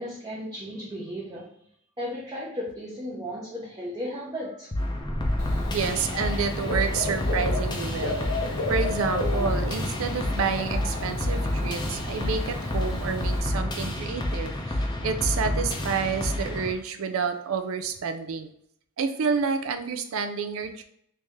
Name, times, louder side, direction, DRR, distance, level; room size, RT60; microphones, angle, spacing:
voice 1, 0.0-1.5 2.0-4.7, equal, 20° right, -6 dB, 0.7 m, -35 dB
sound 1, 4.7-16.7, left 1 dB, 20° left, 0.6 m, -29 dB
sound 2, 5.0-7.3, equal, 40° right, 1.3 m, -36 dB
Dog / Bird, 5.4-13.4, left 2 dB, 85° left, 0.7 m, -33 dB
voice 2, 5.7-18.5 19.0-20.8, right 5 dB, 80° right, 9 dB, 0.4 m, -29 dB
3.2 x 2.7 x 3.5 m, 0.71 s
head